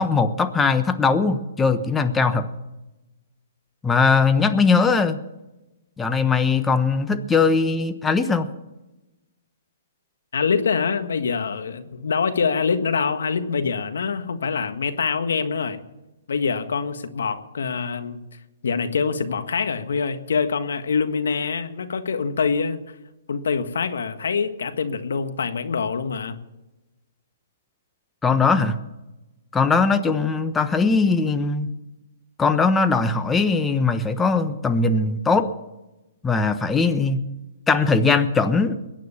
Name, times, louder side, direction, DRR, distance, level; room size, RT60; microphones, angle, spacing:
voice 1, 0.0-2.5 3.8-5.2 6.0-8.5 28.2-28.8 29.5-31.7 32.4-35.5 36.2-37.2 37.7-38.8, left 4 dB, 10° left, 9 dB, 1.1 m, -20 dB
voice 2, 10.3-15.8 16.3-18.2 18.6-22.8 23.3-26.4, left 5 dB, 75° left, 9 dB, 1.6 m, -25 dB
21.5 x 9.2 x 7.1 m, 1.0 s
hypercardioid pair, 140°, 0 cm